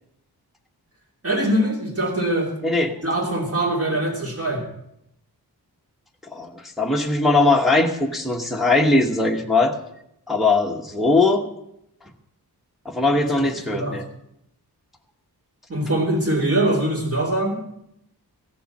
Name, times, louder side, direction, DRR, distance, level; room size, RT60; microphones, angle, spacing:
voice 1, 1.2-2.5 3.0-4.6 13.4-14.0 15.7-17.7, right 1 dB, 35° right, -1 dB, 2.9 m, -23 dB
voice 2, 2.6-3.0 6.3-9.7 10.3-11.5 12.8-14.0, left 2 dB, ahead, 0 dB, 1.1 m, -20 dB
15.5 x 6.9 x 7.1 m, 0.80 s
wide cardioid pair, 140°, 38 cm